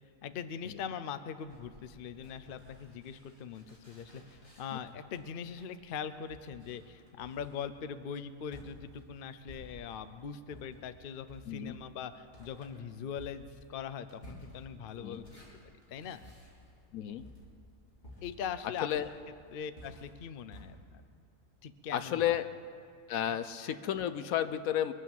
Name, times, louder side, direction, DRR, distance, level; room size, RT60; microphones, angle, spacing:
voice 1, 0.2-15.4 15.9-16.2 18.2-19.1 19.5-21.0 21.6-22.4, left 7 dB, 55° left, 12 dB, 0.7 m, -41 dB
sound 1, 1.4-10.1 10.5-20.6, left 1 dB, 30° left, 3.5 m, -55 dB
voice 2, 11.5-11.8 15.0-15.2 16.9-17.2 18.8-19.1 21.9-22.5 23.1-24.9, left 11 dB, 80° left, 12 dB, 1.1 m, -32 dB
23.5 x 8.3 x 7.2 m, 2.3 s
omnidirectional pair, 1.5 m